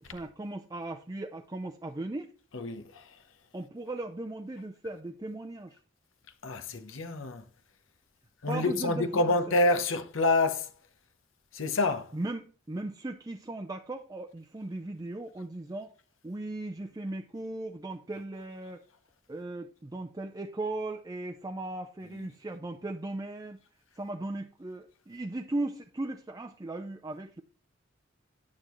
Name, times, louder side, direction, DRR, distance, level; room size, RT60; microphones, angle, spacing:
voice 1, 0.0-2.3 3.5-5.8 8.5-9.5 12.1-15.9 16.2-18.8 19.3-23.6 24.0-27.4, right 2 dB, 20° right, 0.5 m, -37 dB
voice 2, 2.5-3.0 6.4-7.4 8.4-10.7 11.5-12.1 22.0-22.3, left 2 dB, 85° left, 0.9 m, -28 dB
9.7 x 8.8 x 3.1 m
head